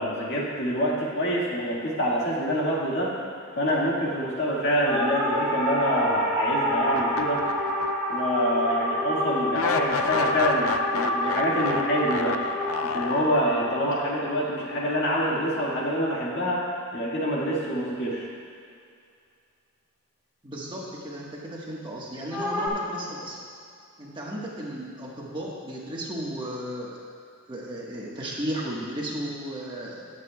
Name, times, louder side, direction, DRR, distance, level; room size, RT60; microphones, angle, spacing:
voice 1, 0.0-3.2 3.5-7.5 8.1-12.4 12.8-16.7 16.9-18.3, equal, 55° left, -5 dB, 2.0 m, -26 dB
sound 1, 4.8-15.4 22.3-22.7, equal, ahead, 2.0 m, -28 dB
sound 2, 6.9-8.2 8.6-8.7 9.5-13.8, left 6 dB, 70° left, 0.5 m, -32 dB
voice 2, 20.4-23.4 24.0-27.0 27.5-30.1, right 1 dB, 20° right, -4 dB, 1.5 m, -34 dB
19.5 x 8.3 x 2.4 m, 2.3 s
head